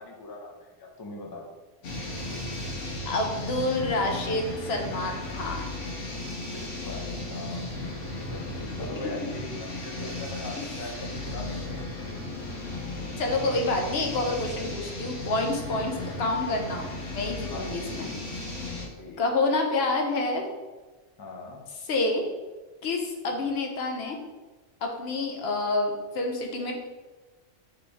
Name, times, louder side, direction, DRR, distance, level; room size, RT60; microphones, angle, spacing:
voice 1, 0.0-1.5 6.5-7.7 8.1-11.9 17.5-18.1 19.0-19.2 21.2-21.6 23.3-23.5, left 2 dB, 30° left, 0 dB, 0.4 m, -41 dB
sound 1, 1.8-18.9, left 2 dB, 85° left, 1.1 m, -35 dB
voice 2, 3.1-5.6 8.9-9.0 13.2-18.1 19.2-20.4 21.9-22.2 22.8-24.2 24.8-26.7, left 2 dB, 65° left, 2 dB, 0.8 m, -28 dB
4.2 x 3.2 x 3.4 m, 1.2 s
omnidirectional pair, 1.2 m